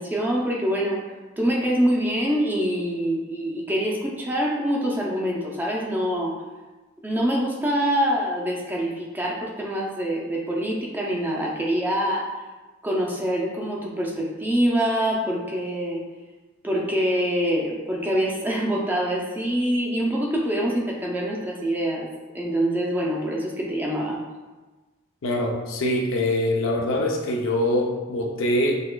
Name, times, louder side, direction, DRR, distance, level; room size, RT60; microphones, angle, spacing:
voice 1, 0.0-6.4 7.0-12.5 12.8-16.0 16.6-22.1 22.3-24.2, equal, 10° right, -2 dB, 0.4 m, -25 dB
voice 2, 25.2-28.8, left 1 dB, 75° left, 1 dB, 0.5 m, -24 dB
6.5 x 2.3 x 2.2 m, 1.2 s
head